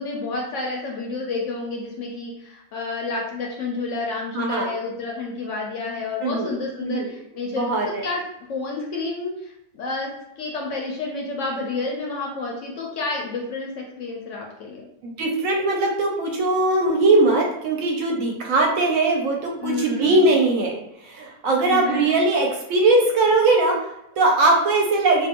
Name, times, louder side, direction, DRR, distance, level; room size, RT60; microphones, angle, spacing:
voice 1, 0.0-7.7 8.0-8.2 8.5-10.1 10.4-14.8 19.6-20.2 21.6-22.1, left 3 dB, 65° left, -1 dB, 0.8 m, -30 dB
voice 2, 4.3-4.7 6.2-6.6 6.8-7.1 7.5-8.0 15.0-25.3, right 2 dB, 70° right, 0 dB, 0.9 m, -20 dB
2.5 x 2.2 x 2.8 m, 0.79 s
omnidirectional pair, 1.6 m